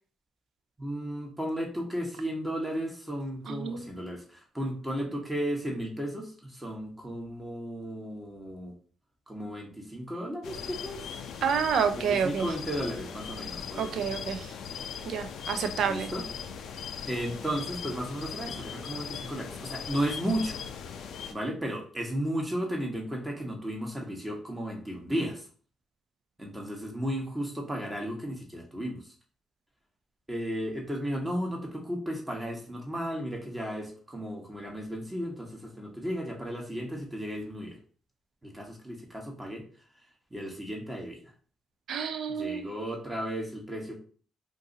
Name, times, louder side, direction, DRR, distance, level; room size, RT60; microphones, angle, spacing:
voice 1, 0.8-8.7 9.3-11.1 11.9-14.0 15.9-16.3 17.1-20.6 21.3-25.5 26.4-29.1 30.3-37.8 38.4-39.6 40.3-41.2 42.3-44.0, equal, 15° right, 0 dB, 1.0 m, -34 dB
voice 2, 3.5-3.9 11.4-12.5 13.8-14.5 15.1-16.1 41.9-42.7, right 7 dB, 70° right, 8 dB, 0.5 m, -29 dB
sound 1, 10.4-21.3, left 7 dB, 75° left, 0.4 m, -39 dB
2.6 x 2.5 x 3.9 m, 0.42 s
cardioid pair, 90°, 0 cm